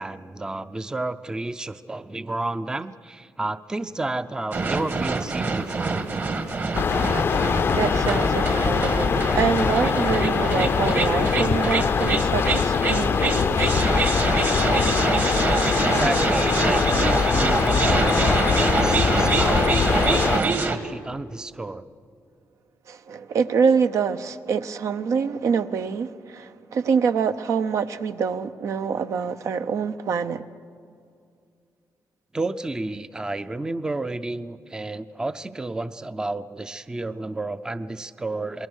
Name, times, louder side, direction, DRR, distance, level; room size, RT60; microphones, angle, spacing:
voice 1, 0.0-6.0 15.8-21.9 32.3-38.7, right 2 dB, 15° right, 0.5 m, -31 dB
sound 1, 4.5-20.8, right 3 dB, 40° right, 1.6 m, -25 dB
sound 2, 6.7-20.4, left 6 dB, 45° left, 0.5 m, -22 dB
voice 2, 7.7-14.1 22.9-30.4, right 6 dB, 70° right, 0.8 m, -25 dB
28.0 x 20.5 x 6.4 m
cardioid pair, 120°, 6 cm